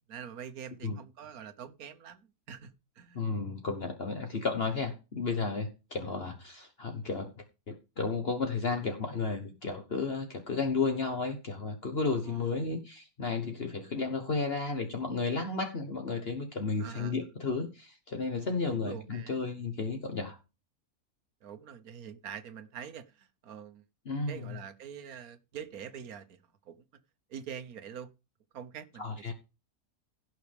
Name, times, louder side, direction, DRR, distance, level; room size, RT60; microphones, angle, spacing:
voice 1, 0.0-3.2 6.0-6.1 12.3-12.5 16.8-17.1 18.6-19.4 21.4-23.8 24.3-26.4 26.6-26.8 27.3-28.1 28.5-29.3, right 8 dB, 85° right, 1.5 m, -45 dB
voice 2, 3.1-7.3 7.7-20.4 24.0-24.6 29.0-29.3, left 4 dB, 45° left, 1.3 m, -33 dB
17.0 x 6.3 x 3.5 m
omnidirectional pair, 1.5 m